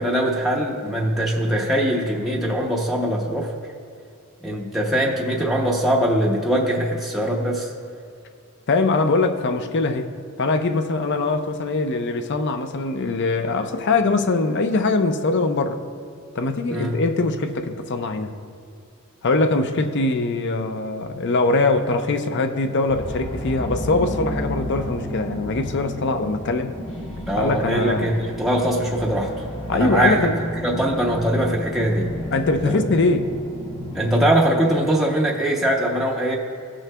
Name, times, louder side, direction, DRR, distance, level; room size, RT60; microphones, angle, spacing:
voice 1, 0.0-3.5 4.4-7.7 16.7-17.0 27.3-29.3 29.7-30.3 30.6-32.2 32.6-32.8 33.9-36.4, right 1 dB, ahead, -3 dB, 0.6 m, -22 dB
voice 2, 8.7-10.1 10.4-15.8 16.4-18.3 19.2-26.7 27.4-28.1 29.7-30.3 32.3-33.3, left 3 dB, 55° left, 7 dB, 0.5 m, -22 dB
sound 1, 22.9-34.1, left 1 dB, 30° left, 0.9 m, -32 dB
16.0 x 6.3 x 2.2 m, 2.4 s
head